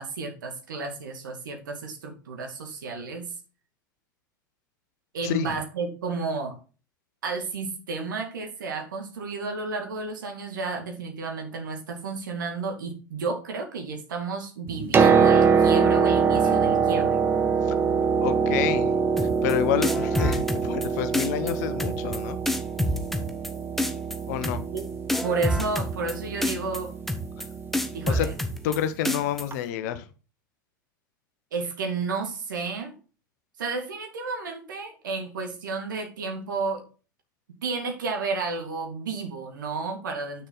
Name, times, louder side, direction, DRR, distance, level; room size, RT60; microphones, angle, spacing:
voice 1, 0.0-3.3 5.1-6.6 7.2-17.2 24.7-24.9 25.2-26.9 27.9-28.3 31.5-32.9 33.6-36.8 37.6-40.5, right 4 dB, 65° right, 2.3 m, -32 dB
voice 2, 5.2-5.6 17.7-17.8 18.2-22.4 24.3-24.6 28.1-28.3 28.6-30.0, left 11 dB, 50° left, 1.0 m, -29 dB
Piano, 14.7-28.4 29.5-29.6, right 6 dB, 20° right, 0.9 m, -24 dB
sound 1, 19.2-19.5 19.8-20.9 21.1-21.5 21.8-22.2 22.5-23.5 23.8-24.2 24.4-24.8 25.1-26.1 26.4-26.8 27.1-27.5 27.7-28.8 29.1-29.4, left 1 dB, ahead, 1.2 m, -27 dB
8.5 x 6.6 x 3.9 m
figure-of-eight pair, 85°, 11 cm